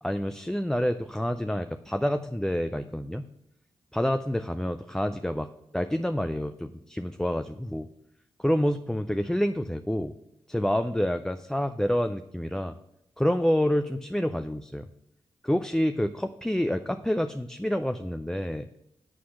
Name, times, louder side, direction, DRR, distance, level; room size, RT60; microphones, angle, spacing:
voice 1, 0.0-3.3 3.9-7.9 8.4-10.1 10.5-12.7 13.2-14.9 15.4-18.7, equal, 5° left, 8 dB, 0.4 m, -28 dB
7.5 x 4.3 x 6.2 m, 0.82 s
supercardioid pair, 45°, 11 cm